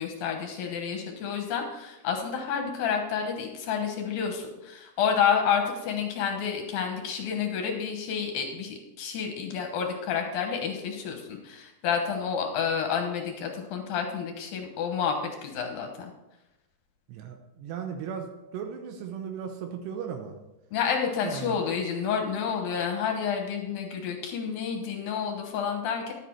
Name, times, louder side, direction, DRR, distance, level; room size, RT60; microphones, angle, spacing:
voice 1, 0.0-16.1 20.7-26.1, left 7 dB, 70° left, 3 dB, 2.5 m, -29 dB
voice 2, 17.1-20.3 21.2-21.6, right 7 dB, 85° right, 5 dB, 2.9 m, -36 dB
11.0 x 8.4 x 4.6 m, 1.0 s
omnidirectional pair, 4.9 m